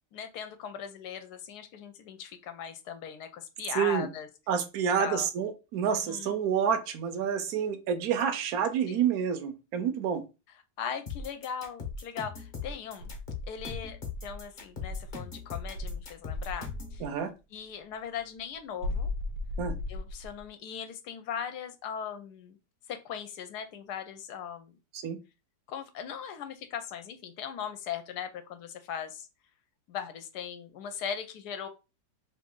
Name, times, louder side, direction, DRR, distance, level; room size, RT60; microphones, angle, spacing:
voice 1, 0.1-4.3 5.0-5.3 5.8-6.4 8.9-9.1 10.8-13.1 13.5-17.0 17.5-19.1 19.9-22.6 22.9-24.7 25.7-29.3 29.9-31.7, left 8 dB, 75° left, 9 dB, 1.1 m, -39 dB
voice 2, 3.8-4.1 4.5-10.2 17.0-17.3 19.6-19.8 24.9-25.2, right 8 dB, 70° right, 9 dB, 1.0 m, -28 dB
sound 1, 11.1-17.0, left 4 dB, 40° left, 0.8 m, -39 dB
Insect, 13.0-15.3 15.7-17.2 18.8-20.5, left 2 dB, 90° right, 1.3 m, -36 dB
3.1 x 2.5 x 3.6 m, 0.28 s
omnidirectional pair, 1.8 m